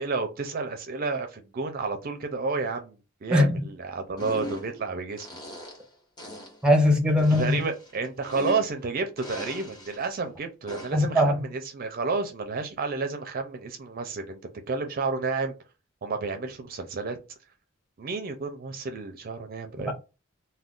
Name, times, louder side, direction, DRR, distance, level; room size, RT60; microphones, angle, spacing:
voice 1, 0.0-5.3 7.2-14.4 14.7-15.5 16.0-17.2 18.0-19.9, right 4 dB, 45° right, 0.4 m, -31 dB
voice 2, 3.3-3.6 6.6-7.6 10.9-11.4 19.9-20.0, left 1 dB, 5° right, 0.6 m, -20 dB
sound 1, 4.2-4.8 5.2-5.9 6.2-6.6 7.2-8.8 9.2-10.1 10.7-11.1, left 1 dB, 20° left, 1.0 m, -40 dB
2.4 x 2.2 x 3.5 m
head